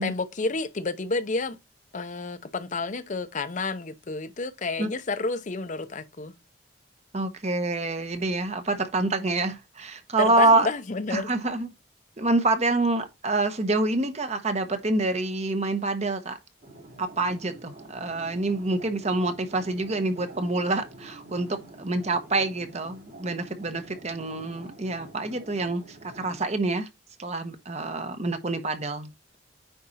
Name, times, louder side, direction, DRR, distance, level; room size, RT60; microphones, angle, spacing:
voice 1, 0.0-1.6 1.9-6.3 10.2-11.3, left 3 dB, 45° left, 0.7 m, -30 dB
voice 2, 7.1-10.7 11.1-11.7 12.2-16.4 17.0-26.9 27.2-29.1, right 2 dB, 40° right, 1.2 m, -26 dB
sound 1, 16.6-26.5, right 2 dB, 60° right, 3.2 m, -47 dB
9.4 x 4.3 x 4.2 m
head